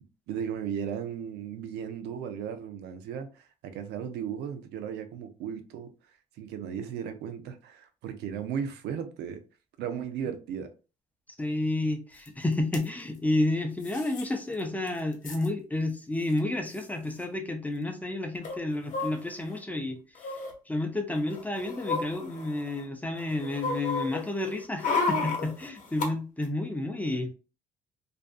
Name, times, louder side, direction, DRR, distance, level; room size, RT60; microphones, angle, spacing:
voice 1, 0.3-5.9 6.4-9.4 9.8-10.7, right 8 dB, 80° right, 0.5 m, -36 dB
voice 2, 11.4-20.0 20.7-27.3, left 2 dB, 10° left, 0.4 m, -30 dB
sound 1, 12.3-12.4 12.5-12.8 13.8-14.3 14.6-14.7 14.9-15.5 16.3-16.4 16.7-16.9 18.4-19.6 20.2-20.5 21.2-22.8 23.2-26.1 26.4-26.5, left 4 dB, 50° left, 0.8 m, -33 dB
2.5 x 2.2 x 2.4 m
cardioid pair, 110°, 17 cm